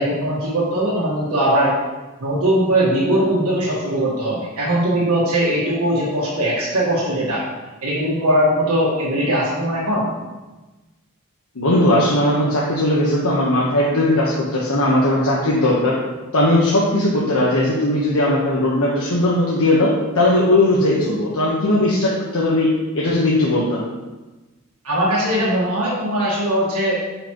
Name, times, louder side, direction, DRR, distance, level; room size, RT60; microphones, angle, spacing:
voice 1, 0.0-1.7 2.2-7.4 7.8-10.0 24.8-27.0, right 1 dB, 85° right, -6 dB, 1.6 m, -20 dB
voice 2, 11.5-16.0 16.3-22.7 22.9-23.8, left 1 dB, 85° left, -5 dB, 1.2 m, -18 dB
9.3 x 5.0 x 3.0 m, 1.2 s
head